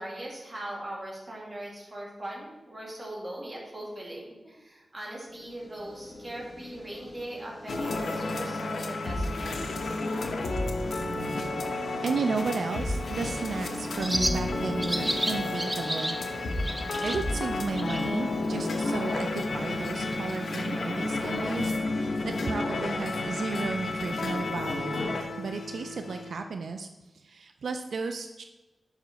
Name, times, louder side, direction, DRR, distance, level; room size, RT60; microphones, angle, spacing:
voice 1, 0.0-10.0, right 1 dB, 35° right, -3 dB, 2.1 m, -40 dB
sound 1, 5.3-24.4, left 1 dB, 45° left, 1.3 m, -48 dB
sound 2, 7.7-26.3, left 2 dB, 85° left, 0.8 m, -31 dB
voice 2, 12.0-16.2 17.0-26.9 27.1-28.4, right 4 dB, 90° right, 6 dB, 0.3 m, -34 dB
Bird, 12.7-21.7, right 1 dB, 15° right, 0.4 m, -36 dB
5.6 x 4.8 x 5.1 m, 1.1 s
wide cardioid pair, 100°, 0 cm